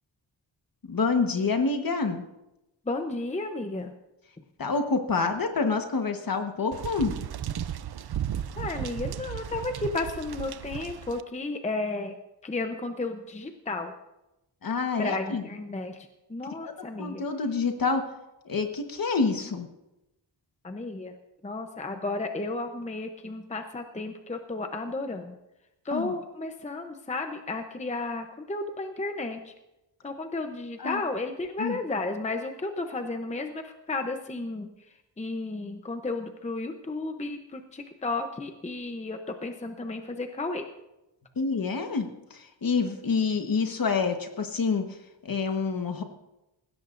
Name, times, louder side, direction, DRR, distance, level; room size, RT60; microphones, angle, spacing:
voice 1, 0.8-2.2 4.6-7.1 14.6-15.4 16.6-18.0 18.4-19.7 25.9-26.1 30.8-31.0 31.6-31.8 41.4-44.9 45.2-46.0, left 4 dB, 50° left, 6 dB, 1.3 m, -27 dB
voice 2, 2.9-3.9 8.6-12.1 12.4-13.9 15.0-17.2 20.6-21.1 21.4-25.4 25.8-29.5 30.0-34.7 35.2-40.6, left 2 dB, 15° left, 6 dB, 0.7 m, -33 dB
sound 1, 6.7-11.2, right 10 dB, 60° right, 0.5 m, -35 dB
19.5 x 16.5 x 2.6 m, 0.95 s
wide cardioid pair, 170°, 44 cm